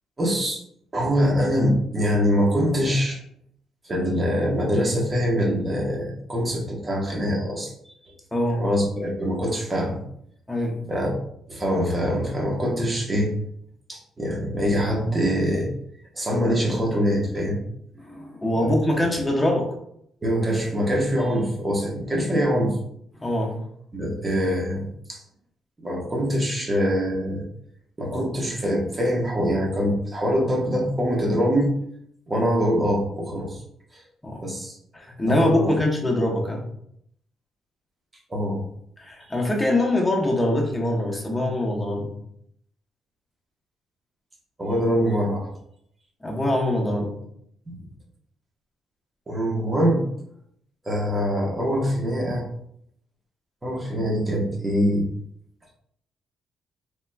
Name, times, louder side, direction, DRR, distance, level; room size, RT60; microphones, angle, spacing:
voice 1, 0.2-0.6 0.9-3.2 3.9-7.7 8.0-8.1 8.5-10.0 10.9-11.2 11.5-13.3 13.9-15.7 16.1-17.6 18.6-18.7 20.2-22.8 23.9-25.2 25.8-27.4 28.0-31.8 32.3-33.6 34.4-34.8 35.2-35.7 38.3-38.6 44.6-45.5 47.7-47.8 49.3-50.0 50.8-52.4 53.6-55.0, equal, 25° right, -1 dB, 0.9 m, -24 dB
voice 2, 8.3-8.6 10.5-10.8 18.0-19.7 22.2-22.3 23.2-23.6 34.2-34.4 34.9-36.6 39.0-42.1 46.2-47.1, left 1 dB, 10° left, -1 dB, 0.8 m, -23 dB
3.2 x 2.9 x 2.2 m, 0.71 s
cardioid pair, 90°, 0 cm